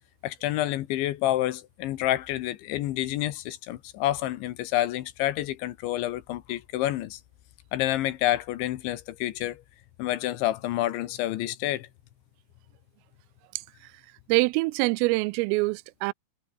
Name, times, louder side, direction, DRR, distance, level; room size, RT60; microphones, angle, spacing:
voice 1, 0.2-7.2 7.7-9.6 10.0-11.9, left 14 dB, 75° left, 3.3 m, -28 dB
voice 2, 13.5-13.9 14.3-16.1, right 24 dB, 85° right, 3.2 m, -25 dB
omnidirectional pair, 5.8 m